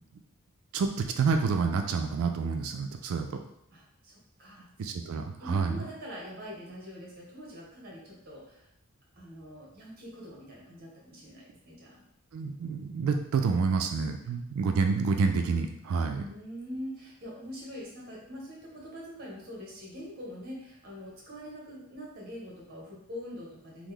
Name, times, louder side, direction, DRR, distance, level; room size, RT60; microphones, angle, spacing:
voice 1, 0.7-3.4 4.8-5.8 12.3-16.2, right 5 dB, 70° right, 6 dB, 0.3 m, -28 dB
voice 2, 3.7-4.7 5.4-8.7 9.1-12.0 13.9-14.0 16.0-23.9, equal, 45° right, -3 dB, 1.0 m, -44 dB
3.0 x 2.0 x 3.6 m, 0.77 s
head